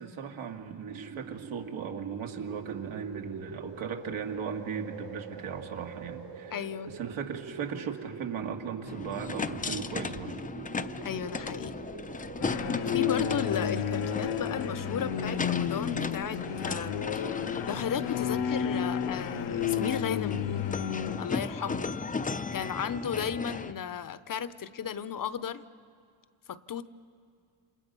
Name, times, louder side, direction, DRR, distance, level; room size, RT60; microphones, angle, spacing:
voice 1, 0.0-10.3, right 6 dB, 80° right, 4 dB, 2.3 m, -37 dB
sound 1, 0.9-17.1, right 7 dB, 50° right, 1.1 m, -44 dB
voice 2, 6.5-6.9 11.0-11.7 12.9-20.5 21.2-21.9 22.5-25.6 26.5-26.8, left 8 dB, 45° left, 15 dB, 0.8 m, -34 dB
sound 2, 8.8-23.7, left 4 dB, 15° left, 0.6 m, -36 dB
sound 3, 12.4-21.2, left 9 dB, 85° left, 1.2 m, -32 dB
28.5 x 27.5 x 5.4 m, 2.2 s
cardioid pair, 105°, 48 cm